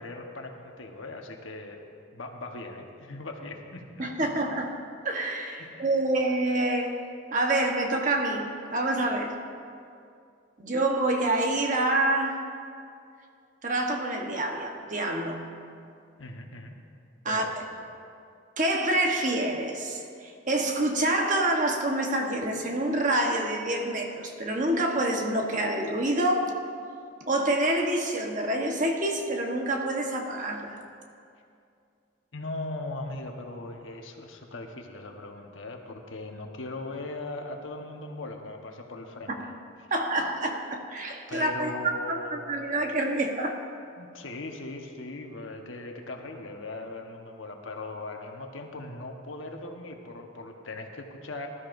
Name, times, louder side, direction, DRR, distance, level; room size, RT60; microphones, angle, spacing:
voice 1, 0.0-1.8 2.1-3.8 5.6-5.9 16.2-16.8 17.3-17.5 32.3-39.5 41.3-42.4 44.0-51.5, left 2 dB, 75° left, 2 dB, 1.2 m, -39 dB
voice 2, 4.0-4.7 5.0-6.9 7.3-9.3 10.6-12.4 13.6-15.5 17.2-17.4 18.6-26.5 27.3-30.8 39.3-39.4 39.9-41.7 42.1-43.6, right 1 dB, 40° right, 2 dB, 1.2 m, -27 dB
19.5 x 13.0 x 2.6 m, 2.4 s
head